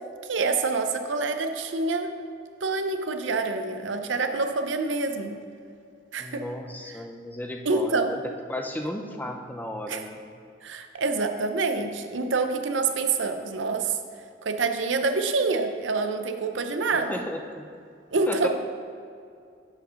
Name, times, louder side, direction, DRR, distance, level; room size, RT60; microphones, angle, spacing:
voice 1, 0.3-2.1 2.6-5.4 6.1-6.4 7.7-8.1 9.9-10.0 10.6-14.0 14.4-17.2 18.1-18.5, right 3 dB, 90° right, 7 dB, 0.6 m, -26 dB
voice 2, 6.2-8.2 8.5-10.2 16.9-17.7 18.3-18.5, left 1 dB, 10° left, 3 dB, 0.5 m, -34 dB
7.8 x 4.4 x 5.7 m, 2.4 s
head